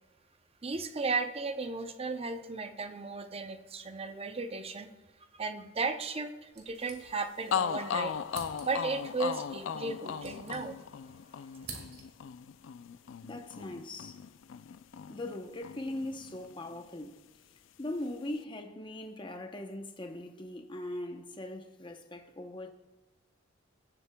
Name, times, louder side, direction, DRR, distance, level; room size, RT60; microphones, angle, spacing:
voice 1, 0.6-4.9 5.4-8.1 8.6-10.8, right 4 dB, 30° right, 0.6 m, -35 dB
sound 1, 6.5-7.5 7.8-7.9 8.3-9.0 9.8-11.1 11.3-12.3, right 4 dB, 55° right, 1.9 m, -48 dB
sound 2, 7.1-7.2 7.5-15.4 15.6-16.8, left 7 dB, 75° left, 0.4 m, -37 dB
voice 2, 13.2-14.2 15.1-17.2 17.8-22.7, left 1 dB, 25° left, 0.7 m, -40 dB
17.0 x 7.8 x 2.2 m
head